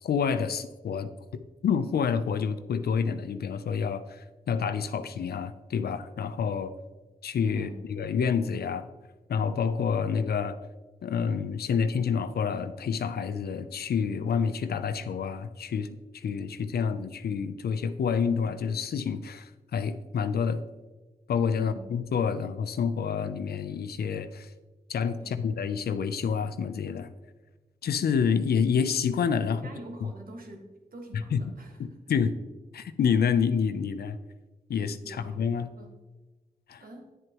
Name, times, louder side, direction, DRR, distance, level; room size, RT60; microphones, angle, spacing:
voice 1, 0.0-6.7 7.2-8.8 9.3-10.6 11.0-20.6 21.3-24.5 24.9-27.1 27.8-29.6 31.1-31.4 32.1-32.3 32.7-34.2 34.7-35.7 36.7-36.8, left 6 dB, 80° left, 12 dB, 0.5 m, -28 dB
voice 2, 21.6-21.9 25.2-25.4 29.5-31.9 35.0-35.4 35.7-36.0 36.8-37.2, right 1 dB, 65° right, 2 dB, 1.6 m, -45 dB
9.5 x 7.8 x 3.0 m, 1.2 s
cardioid pair, 65°, 16 cm